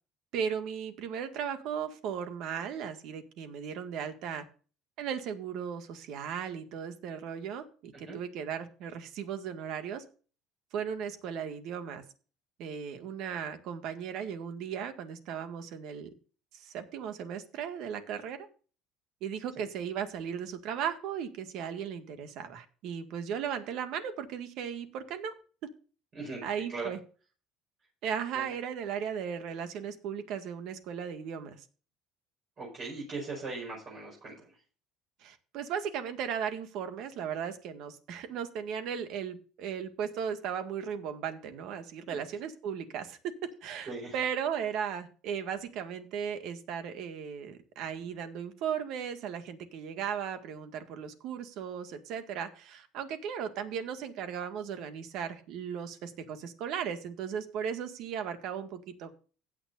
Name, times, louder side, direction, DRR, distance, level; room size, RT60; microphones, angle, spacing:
voice 1, 0.3-4.5 5.0-10.0 10.7-12.0 12.6-16.1 16.5-18.4 19.2-25.3 26.4-27.0 28.0-31.6 35.2-59.1, right 8 dB, 55° right, 8 dB, 1.8 m, -36 dB
voice 2, 26.1-26.4 26.7-26.9 28.3-28.4 32.6-34.6 42.1-42.2 43.9-44.2, right 3 dB, 35° right, -2 dB, 5.2 m, -39 dB
16.0 x 9.2 x 2.6 m, 0.38 s
cardioid pair, 165°, 0 cm